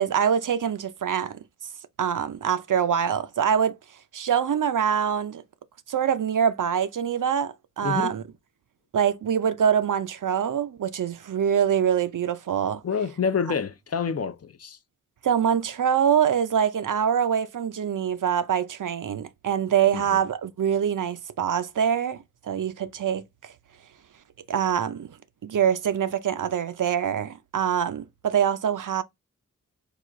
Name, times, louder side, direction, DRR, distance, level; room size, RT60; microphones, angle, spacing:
voice 1, 0.0-1.4 2.0-3.8 4.1-5.4 5.9-8.2 8.9-12.8 15.2-23.5 24.5-25.2 25.4-29.0, right 8 dB, 75° right, 0.5 m, -24 dB
voice 2, 7.8-8.1 12.8-14.8 19.9-20.2, left 6 dB, 50° left, 0.5 m, -28 dB
4.8 x 2.3 x 3.7 m
wide cardioid pair, 80°, 31 cm